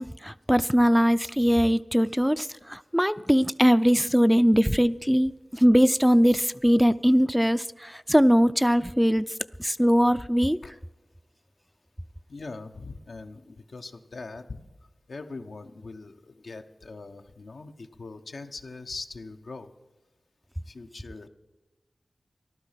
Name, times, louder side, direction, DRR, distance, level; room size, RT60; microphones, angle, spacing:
voice 1, 0.0-9.2 9.6-10.6, equal, 5° right, 14 dB, 0.4 m, -21 dB
voice 2, 12.3-14.6 15.1-19.7 20.6-21.3, left 3 dB, 80° left, 5 dB, 0.9 m, -41 dB
15.0 x 12.0 x 5.8 m, 1.1 s
cardioid pair, 45°, 0 cm